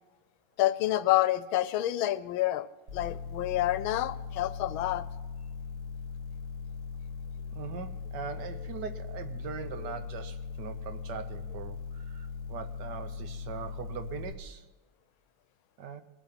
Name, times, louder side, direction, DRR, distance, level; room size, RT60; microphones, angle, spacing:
voice 1, 0.6-2.7 2.9-5.1, left 15 dB, 85° left, 15 dB, 1.4 m, -28 dB
sound 1, 2.9-14.3, left 5 dB, 40° right, 2.6 m, -40 dB
voice 2, 7.5-14.7 15.8-16.0, right 7 dB, 65° right, 9 dB, 1.3 m, -41 dB
20.5 x 7.2 x 5.8 m, 1.3 s
omnidirectional pair, 2.2 m